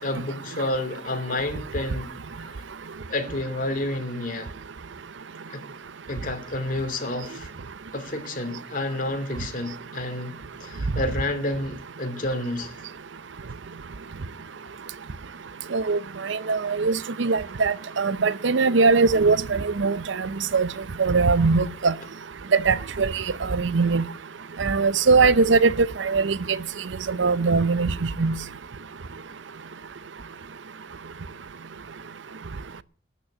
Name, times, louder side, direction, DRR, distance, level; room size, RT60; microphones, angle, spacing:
voice 1, 0.0-2.1 3.1-4.5 5.5-5.6 6.1-7.5 7.9-12.7, left 1 dB, 45° left, 2.9 m, -30 dB
voice 2, 16.3-20.0 20.5-20.7 21.0-21.9 22.5-23.1 23.5-24.0 24.6-26.4 27.2-27.9 28.2-28.3, right 4 dB, 70° right, 0.6 m, -21 dB
12.5 x 9.3 x 8.6 m
head